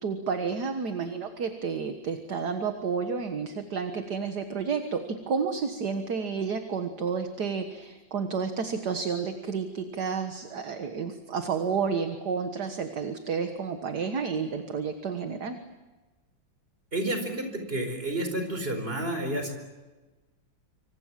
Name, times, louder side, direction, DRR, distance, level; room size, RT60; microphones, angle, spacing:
voice 1, 0.0-15.6, right 5 dB, 55° right, 7 dB, 1.9 m, -31 dB
voice 2, 16.9-19.5, right 1 dB, 30° right, 6 dB, 4.9 m, -30 dB
26.5 x 26.0 x 7.5 m, 1.2 s
omnidirectional pair, 2.1 m